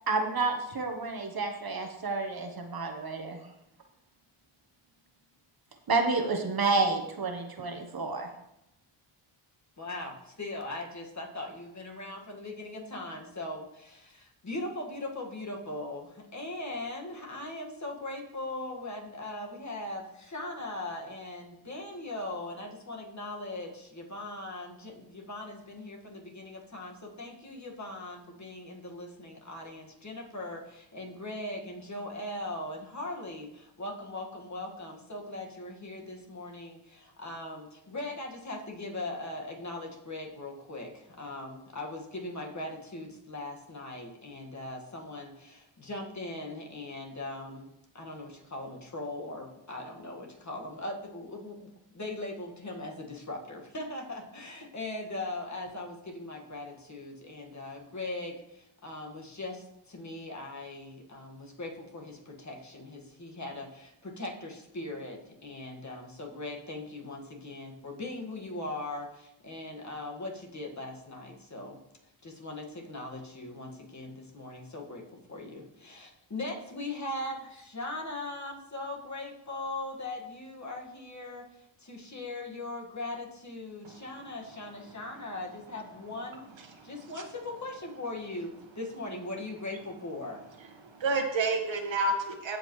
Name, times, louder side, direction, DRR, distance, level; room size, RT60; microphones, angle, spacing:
voice 1, 0.1-3.4 5.9-8.3, right 3 dB, 45° right, 4 dB, 1.1 m, -30 dB
voice 2, 9.8-71.8 72.2-86.4 86.8-90.4, left 2 dB, 35° left, 0 dB, 1.7 m, -40 dB
voice 3, 86.6-87.2 90.8-92.6, right 2 dB, 65° right, 4 dB, 1.4 m, -31 dB
15.5 x 5.2 x 3.1 m, 0.83 s
cardioid pair, 80°, 50 cm